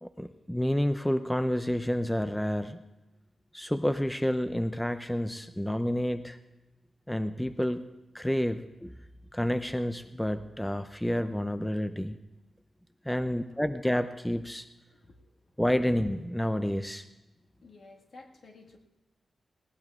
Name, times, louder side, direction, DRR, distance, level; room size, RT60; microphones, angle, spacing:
voice 1, 0.0-2.8 3.5-6.4 7.1-7.8 8.1-8.9 9.3-12.2 13.1-14.7 15.6-17.0, equal, 5° left, 10 dB, 0.4 m, -29 dB
voice 2, 17.6-18.8, left 3 dB, 60° left, 0 dB, 1.6 m, -53 dB
19.5 x 17.5 x 2.4 m, 1.1 s
wide cardioid pair, 125°, 0 cm